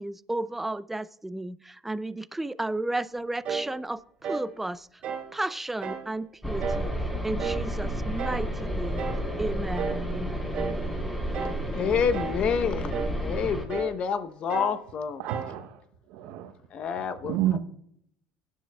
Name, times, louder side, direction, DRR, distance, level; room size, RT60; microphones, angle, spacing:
voice 1, 0.0-4.9 5.3-9.0 9.4-10.5, right 2 dB, 10° right, 15 dB, 0.5 m, -33 dB
sound 1, 3.4-3.7 4.2-4.5 5.0-5.3 5.8-6.1 6.6-6.9 7.4-7.7 8.2-8.5 9.0-9.3 9.8-10.1 10.5-10.8 11.3-11.7 12.1-12.5 12.9-13.2 13.7-14.0 14.5-14.8 15.3-15.6, right 6 dB, 55° right, 1.5 m, -33 dB
sound 2, 6.4-13.6, equal, 10° left, 4.2 m, -31 dB
voice 2, 11.4-15.2 16.7-17.6, left 7 dB, 50° left, 11 dB, 0.9 m, -29 dB
voice 3, 15.2-16.5 17.2-17.6, right 12 dB, 70° right, 9 dB, 0.9 m, -30 dB
22.5 x 10.0 x 2.3 m, 0.71 s
hypercardioid pair, 70°, 2 cm